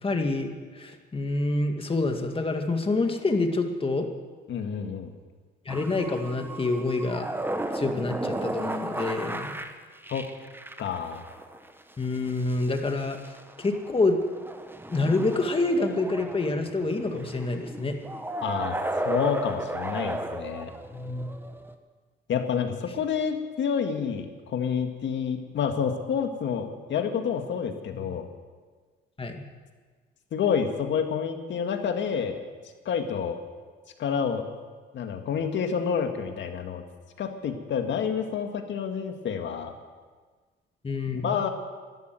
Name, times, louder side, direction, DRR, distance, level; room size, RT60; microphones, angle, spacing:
voice 1, 0.0-4.1 5.7-7.3 7.7-9.6 12.0-13.3 13.6-14.2 14.9-17.9 20.9-21.3 27.9-28.1 29.2-29.4 40.8-41.4, left 2 dB, 25° left, 4 dB, 2.1 m, -27 dB
voice 2, 4.5-5.1 10.1-10.3 10.8-11.2 18.4-18.8 19.1-20.7 22.3-28.3 30.3-32.4 32.9-33.4 34.0-34.4 34.9-36.8 37.2-39.7 41.1-41.5, left 7 dB, 70° left, 5 dB, 1.9 m, -28 dB
sound 1, 5.7-21.7, right 1 dB, 10° right, 1.2 m, -34 dB
13.0 x 12.0 x 9.3 m, 1.5 s
cardioid pair, 90°, 20 cm